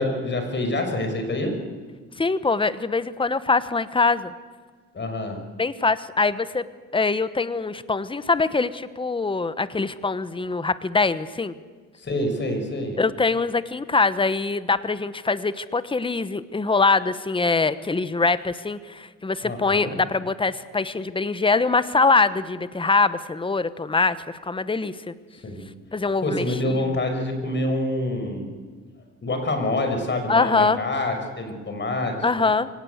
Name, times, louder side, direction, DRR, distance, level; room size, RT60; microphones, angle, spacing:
voice 1, 0.0-1.6 4.9-5.4 11.9-13.0 19.4-19.9 25.3-25.7 26.2-28.5 29.2-32.4, left 1 dB, 35° left, 5 dB, 5.9 m, -26 dB
voice 2, 2.2-4.3 5.6-6.6 6.9-11.5 13.0-25.1 25.9-26.5 30.3-30.8 32.2-32.7, left 3 dB, 15° left, 14 dB, 1.1 m, -23 dB
24.0 x 18.0 x 8.1 m, 1.4 s
cardioid pair, 90°, 30 cm